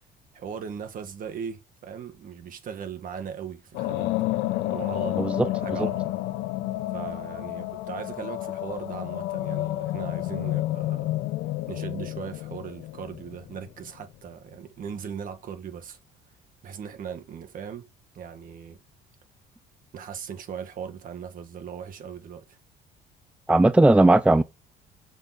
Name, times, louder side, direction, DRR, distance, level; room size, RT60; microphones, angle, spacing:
voice 1, 0.3-4.2 4.7-6.1 6.9-11.2 11.7-16.0 16.6-17.9 18.1-18.8 19.9-22.6, right 7 dB, 55° right, 1.7 m, -38 dB
sound 1, 3.7-13.9, left 16 dB, 85° left, 0.8 m, -30 dB
voice 2, 23.5-24.4, right 2 dB, 5° right, 0.4 m, -17 dB
7.0 x 5.9 x 4.2 m
cardioid pair, 110°, 17 cm